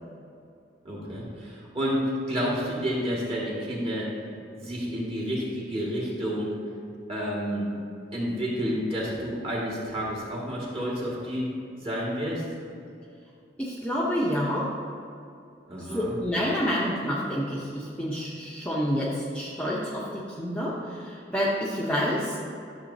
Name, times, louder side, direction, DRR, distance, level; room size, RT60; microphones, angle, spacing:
voice 1, 0.8-4.1 4.5-6.5 7.1-7.7 8.1-11.5 11.8-12.4 15.7-16.2, equal, 30° right, -5 dB, 2.1 m, -30 dB
voice 2, 13.6-14.6 15.9-20.0 20.4-20.7 21.0-22.4, equal, 5° left, -7 dB, 0.8 m, -28 dB
12.0 x 6.9 x 2.8 m, 2.5 s
head